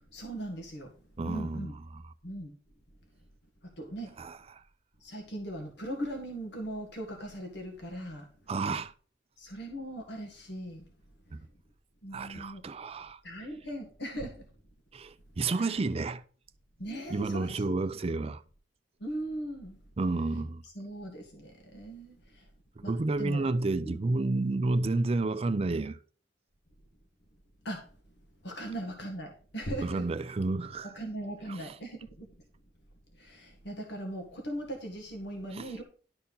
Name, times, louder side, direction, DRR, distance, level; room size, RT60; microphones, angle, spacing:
voice 1, 0.1-0.9 1.2-1.8 2.2-2.5 3.8-4.2 5.0-8.3 9.4-10.8 12.0-12.6 13.2-14.5 15.5-15.8 16.8-18.0 19.0-19.8 20.7-22.5 22.8-22.9 23.2-23.5 23.8-24.0 27.6-27.9 28.4-30.0 30.8-32.3 33.1-35.8, right 1 dB, 65° left, 1.8 m, -39 dB
voice 2, 1.2-2.0 4.2-4.6 8.5-8.9 11.3-11.4 12.1-13.2 14.9-16.2 17.1-18.4 20.0-20.6 22.8-26.0 29.8-30.9 31.5-31.7 35.5-35.7, right 3 dB, 35° right, 0.4 m, -31 dB
11.5 x 4.4 x 5.4 m
head